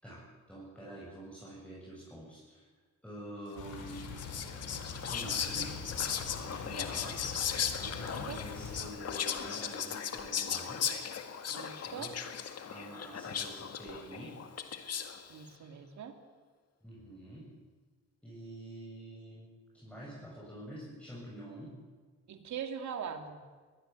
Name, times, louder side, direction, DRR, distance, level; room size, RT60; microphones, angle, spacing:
voice 1, 0.0-2.7 3.0-4.2 5.1-5.8 6.3-7.3 7.7-10.9 11.8-12.2 12.6-14.4 16.8-17.5 18.2-21.8, right 1 dB, 5° left, -6 dB, 7.6 m, -47 dB
sound 1, 3.6-8.8, left 5 dB, 80° left, 4.7 m, -44 dB
Whispering, 3.9-15.3, left 7 dB, 55° left, 1.9 m, -37 dB
voice 2, 7.9-8.4 11.5-12.1 15.3-16.2 22.3-23.4, right 7 dB, 70° right, 6 dB, 2.8 m, -42 dB
22.5 x 18.5 x 7.8 m, 1.5 s
cardioid pair, 90°, 30 cm